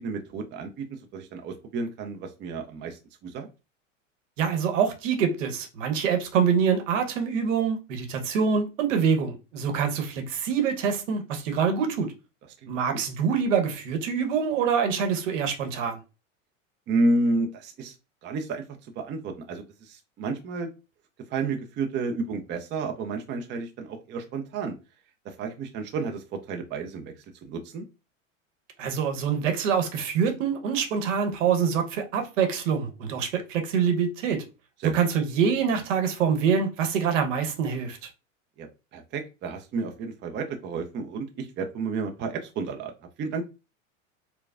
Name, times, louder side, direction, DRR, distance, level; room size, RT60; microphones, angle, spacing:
voice 1, 0.0-3.5 12.6-12.7 16.9-17.9 18.2-18.6 19.0-20.7 21.3-24.7 25.2-27.1 27.4-27.8 34.8-34.9 38.6-42.9 43.2-43.4, right 3 dB, 30° right, 0.6 m, -31 dB
voice 2, 4.4-12.1 12.7-16.0 28.8-34.4 34.8-38.0, right 6 dB, 70° right, 1.0 m, -25 dB
4.5 x 2.2 x 2.4 m
hypercardioid pair, 90°, 40 cm